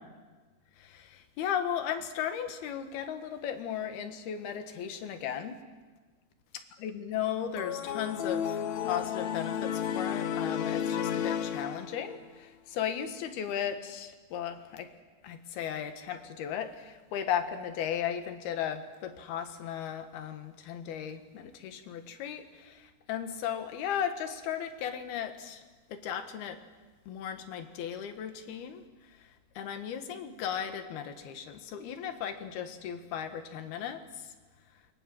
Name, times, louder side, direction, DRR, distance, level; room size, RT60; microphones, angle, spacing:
voice 1, 0.8-5.6 6.8-14.9 15.2-25.6 25.9-26.6 27.1-28.8 29.6-34.3, left 9 dB, 80° left, 8 dB, 3.5 m, -36 dB
sound 1, 7.6-12.2, left 9 dB, 60° left, 2.1 m, -32 dB
27.5 x 23.5 x 7.7 m, 1.3 s
omnidirectional pair, 4.4 m